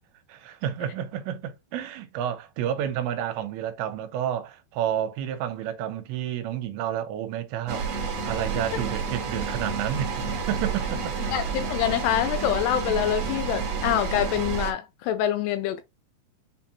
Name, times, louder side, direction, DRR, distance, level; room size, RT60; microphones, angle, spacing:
voice 1, 0.3-11.2, right 10 dB, 85° right, 3.0 m, -30 dB
sound 1, 7.7-14.7, right 5 dB, 60° right, 1.7 m, -30 dB
voice 2, 11.3-15.8, left 11 dB, 85° left, 2.4 m, -26 dB
8.1 x 2.8 x 2.2 m
omnidirectional pair, 5.1 m